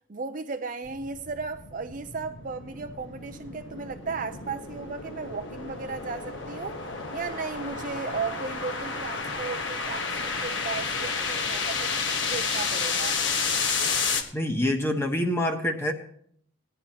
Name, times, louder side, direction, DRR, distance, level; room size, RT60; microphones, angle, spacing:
voice 1, 0.1-6.8 7.1-13.2, right 4 dB, 40° right, 0.5 m, -35 dB
sound 1, 0.8-14.2, left 4 dB, 60° left, 1.3 m, -31 dB
voice 2, 14.3-15.9, left 1 dB, 10° left, 1.2 m, -26 dB
19.0 x 10.5 x 2.9 m
head